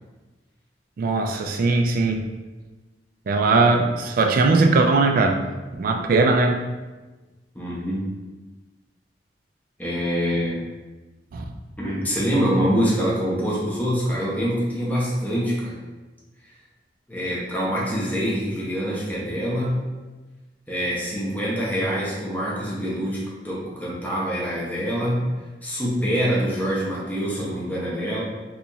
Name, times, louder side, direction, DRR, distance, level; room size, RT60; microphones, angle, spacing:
voice 1, 1.0-2.2 3.3-5.4 5.8-6.6 11.3-11.4, right 3 dB, 50° right, 4 dB, 0.3 m, -19 dB
voice 2, 7.5-8.1 9.8-10.6 11.8-15.8 17.1-19.8 20.7-25.3 25.6-28.2, equal, 10° left, -6 dB, 0.7 m, -25 dB
3.9 x 2.9 x 2.3 m, 1.2 s
head